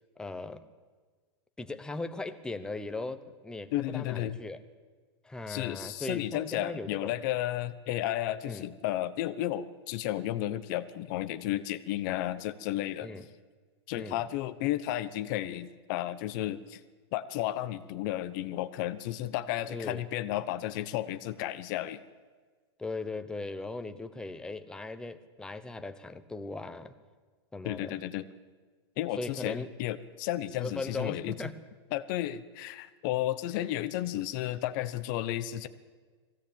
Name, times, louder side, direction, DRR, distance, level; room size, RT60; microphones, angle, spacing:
voice 1, 0.2-0.6 1.6-4.6 5.2-7.2 8.4-8.7 13.0-13.2 14.0-14.2 19.7-20.1 22.8-27.0 27.5-28.0 29.2-29.7 30.6-31.6, left 3 dB, 5° left, 9 dB, 1.0 m, -38 dB
voice 2, 3.7-4.4 5.5-13.1 13.9-16.8 17.1-22.0 27.6-28.3 29.0-31.3 31.9-35.7, left 13 dB, 45° left, 12 dB, 1.0 m, -33 dB
20.5 x 16.5 x 8.8 m, 1.4 s
supercardioid pair, 145°, 14 cm